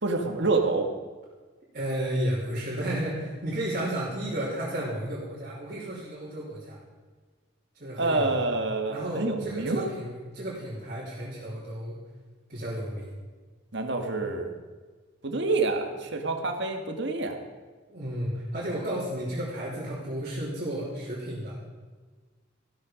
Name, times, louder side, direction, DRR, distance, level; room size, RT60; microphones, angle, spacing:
voice 1, 0.0-0.9 8.0-9.9 13.7-14.5 15.2-17.4, right 3 dB, 60° right, 4 dB, 1.9 m, -27 dB
voice 2, 1.7-6.8 7.7-8.4 8.9-12.0 12.5-13.1 17.9-21.6, right 1 dB, 45° right, -8 dB, 3.4 m, -33 dB
15.0 x 13.0 x 5.2 m, 1.4 s
head